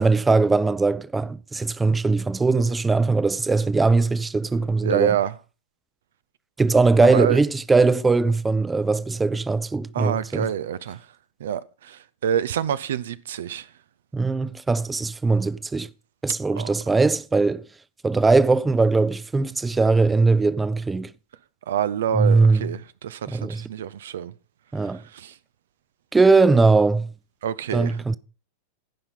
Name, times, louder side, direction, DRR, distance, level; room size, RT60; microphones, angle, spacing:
voice 1, 0.0-5.2 6.6-10.5 14.1-15.9 16.2-17.6 18.0-21.1 22.1-22.7 23.3-23.6 24.7-25.0 26.1-27.1 27.7-28.1, right 3 dB, 10° right, 0.5 m, -20 dB
voice 2, 4.8-5.3 7.0-7.4 9.9-11.0 11.4-13.7 16.6-16.7 21.7-24.3 25.1-25.3 27.4-28.1, right 9 dB, 60° right, 0.5 m, -27 dB
16.0 x 5.7 x 5.3 m
figure-of-eight pair, 90°, 0 cm